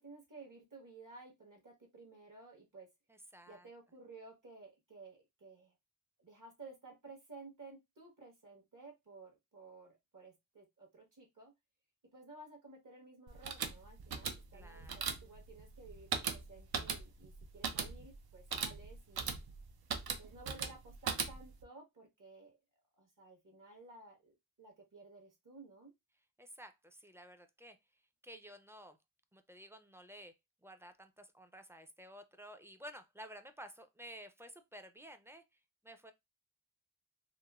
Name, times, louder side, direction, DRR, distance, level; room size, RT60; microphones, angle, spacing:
voice 1, 0.0-2.9 3.5-5.7 6.2-11.5 12.1-19.3 20.1-22.6 23.0-25.9, right 3 dB, 55° right, 1.3 m, -55 dB
voice 2, 3.1-3.7 14.5-14.9 26.4-27.8 28.2-29.0 29.3-30.3 30.6-35.4 35.8-36.1, equal, 5° right, 0.3 m, -53 dB
sound 1, 13.3-21.6, right 6 dB, 80° right, 0.5 m, -40 dB
3.0 x 2.0 x 2.3 m
cardioid pair, 60°, 37 cm